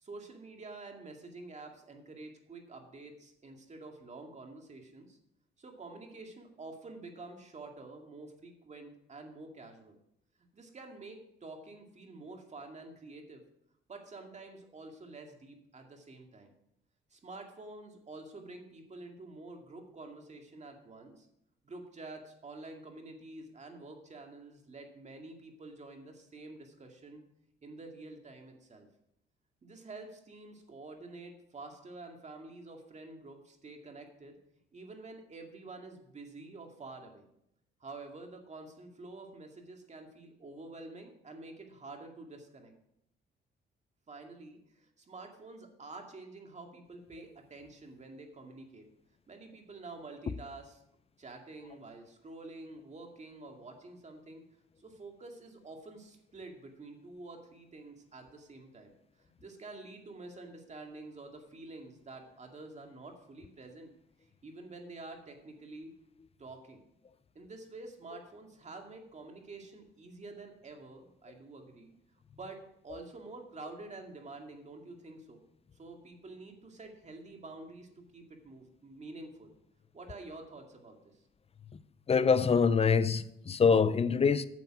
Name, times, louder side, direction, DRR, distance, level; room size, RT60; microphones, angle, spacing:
voice 1, 0.0-5.2 5.6-10.0 10.5-13.4 13.9-16.5 17.1-21.3 21.6-27.2 27.6-28.9 29.6-34.4 34.7-37.2 37.8-42.7 44.1-48.8 49.3-50.8 51.2-54.4 54.8-58.9 59.4-63.9 64.4-65.9 66.4-66.8 67.3-71.9 72.3-75.4 75.7-79.5 79.9-81.1, right 2 dB, 35° right, 2.2 m, -48 dB
voice 2, 82.1-84.5, left 5 dB, 30° left, 0.5 m, -25 dB
9.4 x 7.0 x 6.0 m
cardioid pair, 90°, 20 cm